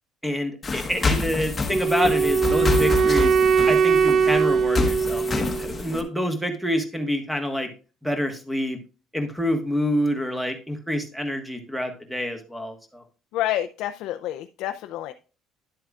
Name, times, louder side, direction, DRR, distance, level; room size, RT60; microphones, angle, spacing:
voice 1, 0.2-3.4 3.7-7.7 8.0-8.8 9.1-13.0, equal, ahead, 6 dB, 1.3 m, -27 dB
sound 1, 0.6-6.0, left 4 dB, 20° left, 1.1 m, -27 dB
Wind instrument woodwind instrument, 1.7-5.8, right 6 dB, 35° right, 0.4 m, -20 dB
voice 2, 13.3-15.1, left 13 dB, 75° left, 8 dB, 0.4 m, -28 dB
10.5 x 7.6 x 2.4 m, 0.35 s
cardioid pair, 150°, 0 cm